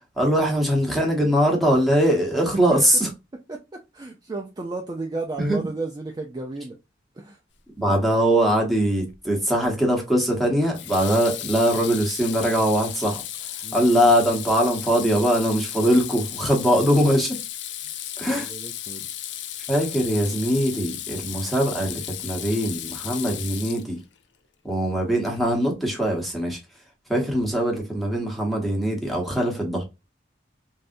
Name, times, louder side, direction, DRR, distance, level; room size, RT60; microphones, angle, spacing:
voice 1, 0.2-3.1 5.4-5.6 7.8-13.2 13.7-17.4 18.2-18.5 19.7-24.0 24.6-26.6 27.1-29.8, equal, ahead, 1.0 m, -22 dB
voice 2, 3.9-6.8 7.2-7.4 13.6-13.9 18.4-19.1, right 3 dB, 20° right, 0.4 m, -33 dB
Water tap faucet / Sink (filling or washing), 9.1-9.4 10.7-24.2, left 11 dB, 65° left, 0.4 m, -34 dB
3.4 x 2.7 x 2.5 m
head